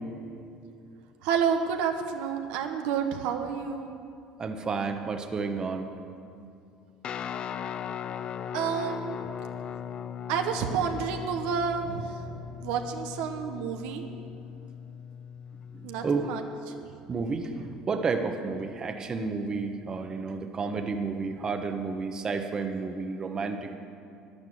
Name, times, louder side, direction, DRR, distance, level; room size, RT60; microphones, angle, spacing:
voice 1, 1.2-3.9 8.5-9.2 10.3-14.0 15.8-16.4, right 7 dB, 80° right, 5 dB, 1.1 m, -30 dB
voice 2, 4.4-5.9 15.7-16.3 17.1-23.8, right 4 dB, 30° right, 6 dB, 1.1 m, -31 dB
Guitar, 7.0-16.4, left 8 dB, 45° left, 0.5 m, -38 dB
11.5 x 10.5 x 7.8 m, 2.5 s
supercardioid pair, 105°, 2 cm